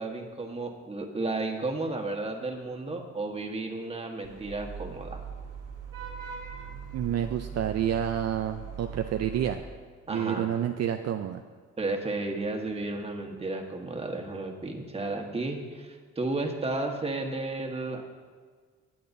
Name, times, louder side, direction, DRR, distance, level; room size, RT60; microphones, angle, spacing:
voice 1, 0.0-5.2 10.1-10.5 11.8-18.0, right 2 dB, 20° right, 2 dB, 1.4 m, -33 dB
Vehicle horn car horn honking / Traffic noise roadway noise, 4.2-9.6, right 6 dB, 90° right, 2.4 m, -40 dB
voice 2, 6.9-9.6 10.1-11.4, right 10 dB, 60° right, 6 dB, 0.5 m, -29 dB
18.0 x 8.6 x 2.7 m, 1.5 s
cardioid pair, 90°, 30 cm